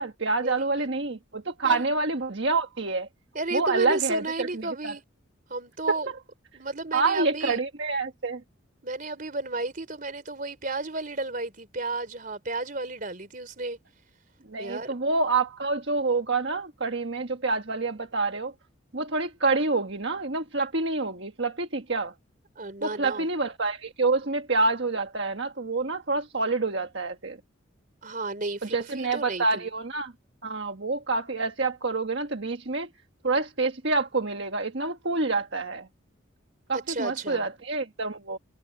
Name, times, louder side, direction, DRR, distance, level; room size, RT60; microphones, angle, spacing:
voice 1, 0.0-3.1 3.5-4.9 6.9-8.4 14.5-18.5 18.9-22.1 22.8-27.4 28.6-30.1 30.4-32.9 33.2-35.9 36.7-38.4, right 3 dB, 60° right, 1.5 m, -27 dB
voice 2, 3.3-5.0 5.5-6.1 6.5-7.6 8.8-13.8 14.6-14.9 22.6-23.3 28.0-29.7 36.7-37.4, right 3 dB, 40° right, 3.7 m, -33 dB
head